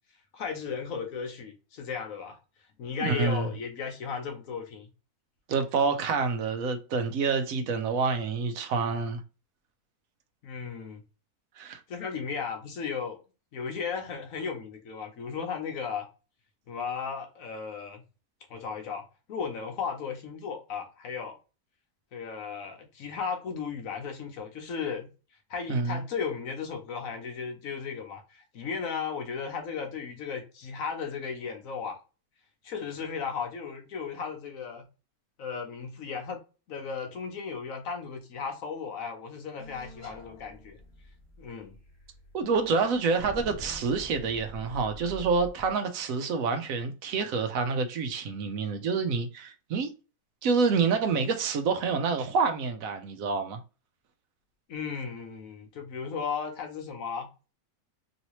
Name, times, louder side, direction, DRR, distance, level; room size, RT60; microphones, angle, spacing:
voice 1, 0.3-2.4 2.8-4.9 10.4-11.0 11.9-13.2 13.5-16.1 16.7-18.0 18.5-21.4 22.1-25.1 25.5-32.0 32.6-34.8 35.4-36.4 36.7-40.8 41.4-41.7 54.7-57.3, left 6 dB, 65° left, 1.1 m, -35 dB
voice 2, 3.0-3.5 5.5-9.2 11.6-11.8 25.7-26.0 42.3-49.9 50.4-53.6, right 4 dB, 70° right, 1.0 m, -27 dB
sound 1, 39.6-45.7, left 1 dB, 15° left, 0.8 m, -46 dB
3.1 x 2.9 x 2.9 m
omnidirectional pair, 1.6 m